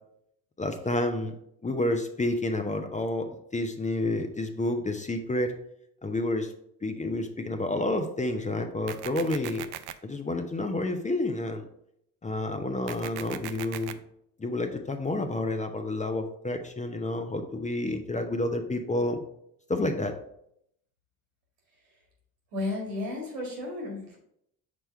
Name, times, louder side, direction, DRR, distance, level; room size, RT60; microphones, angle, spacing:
voice 1, 0.6-1.3 1.6-5.5 6.0-6.5 6.8-9.7 10.0-11.6 12.2-14.0 14.4-19.2 19.7-20.1, left 2 dB, 15° left, 6 dB, 0.7 m, -29 dB
sound 1, 8.9-9.9 12.9-13.9, right 13 dB, 55° right, 0.5 m, -38 dB
voice 2, 22.5-24.2, left 2 dB, 85° right, -1 dB, 2.0 m, -33 dB
6.1 x 3.4 x 4.5 m, 0.74 s
hypercardioid pair, 55°, 47 cm